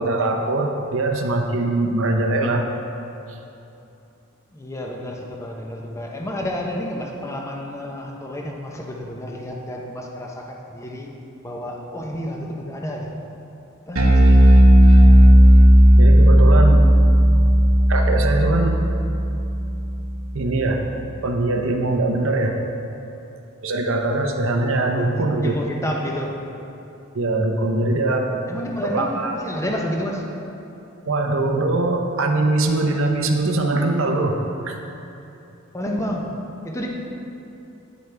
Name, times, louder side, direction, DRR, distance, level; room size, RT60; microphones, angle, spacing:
voice 1, 0.0-2.6 3.3-3.4 16.0-16.9 17.9-18.8 20.3-20.8 21.2-22.6 23.6-25.5 27.1-28.4 28.8-29.3 31.1-34.4 34.6-34.7, right 2 dB, 65° right, 3 dB, 0.8 m, -22 dB
voice 2, 4.5-11.1 11.4-13.1 13.9-14.2 25.0-26.3 28.5-30.3 35.7-36.3 36.6-36.9, left 1 dB, 15° left, 0 dB, 0.8 m, -30 dB
Bass guitar, 14.0-20.4, equal, 85° right, 1.3 m, -13 dB
9.5 x 8.2 x 3.4 m, 2.8 s
head